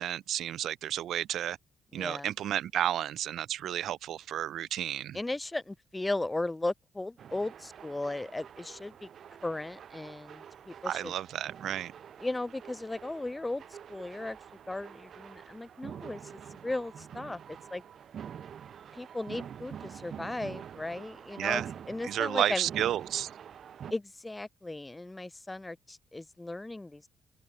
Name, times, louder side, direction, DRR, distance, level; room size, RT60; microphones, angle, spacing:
voice 1, 0.0-1.6 1.9-5.2 10.8-11.9 21.4-21.7 22.0-23.3, right 11 dB, 75° right, 0.9 m, -32 dB
voice 2, 1.9-2.3 5.1-9.1 9.4-11.1 12.2-13.6 13.9-14.4 14.7-17.8 18.9-22.7 23.9-27.1, left 2 dB, 15° left, 0.6 m, -36 dB
sound 1, 7.2-23.9, right 8 dB, 60° right, 3.8 m, -47 dB
cardioid pair, 90°, 0 cm